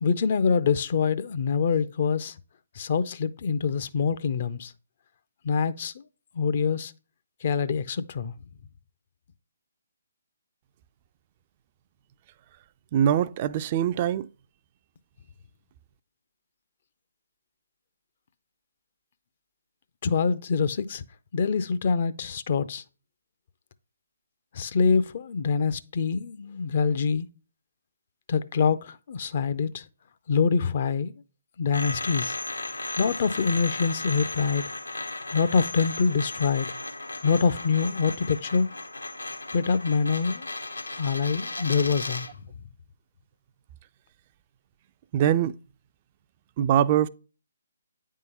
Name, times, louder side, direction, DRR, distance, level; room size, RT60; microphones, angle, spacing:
voice 1, 0.0-2.4 2.8-4.7 5.4-5.9 6.4-6.9 7.4-8.3 20.0-21.0 21.3-22.8 24.5-27.3 28.3-29.8 30.3-31.1 31.6-32.4 33.0-34.6 35.3-36.7 37.2-38.7 39.5-40.5 41.0-42.3, left 5 dB, 40° left, 0.5 m, -25 dB
voice 2, 12.9-14.3 45.1-45.6 46.6-47.1, right 10 dB, 30° right, 0.3 m, -23 dB
sound 1, 31.7-42.4, left 2 dB, 85° left, 1.0 m, -35 dB
9.4 x 3.7 x 5.4 m
figure-of-eight pair, 140°, 0 cm